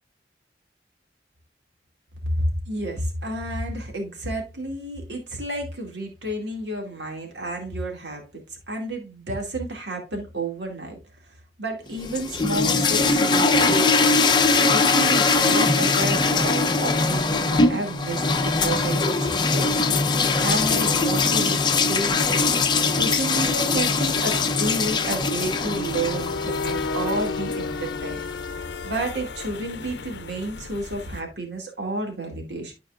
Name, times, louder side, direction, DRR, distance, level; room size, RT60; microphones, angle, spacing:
voice 1, 2.3-11.0 11.6-14.3 14.7-19.2 19.4-19.9 20.4-22.5 22.9-28.2 28.8-32.7, right 1 dB, 90° right, 2.2 m, -31 dB
sound 1, 12.0-28.0, left 3 dB, 25° left, 0.6 m, -21 dB
sound 2, 19.2-31.2, left 4 dB, 80° left, 0.6 m, -35 dB
12.5 x 4.6 x 2.4 m
head